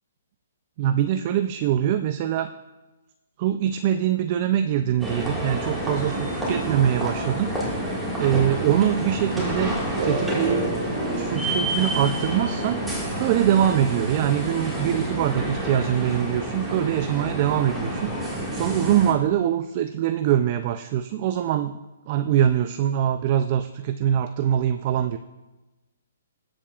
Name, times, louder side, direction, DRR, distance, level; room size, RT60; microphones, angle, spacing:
voice 1, 0.8-2.5 3.4-7.9 8.2-10.7 11.2-12.8 13.2-21.8 22.1-25.2, right 10 dB, 35° right, 9 dB, 0.4 m, -23 dB
sound 1, 5.0-19.1, right 1 dB, 5° right, 1.8 m, -29 dB
sound 2, 9.9-14.5, right 1 dB, 70° right, 2.4 m, -33 dB
19.0 x 7.5 x 2.4 m, 1.1 s
hypercardioid pair, 155°, 0 cm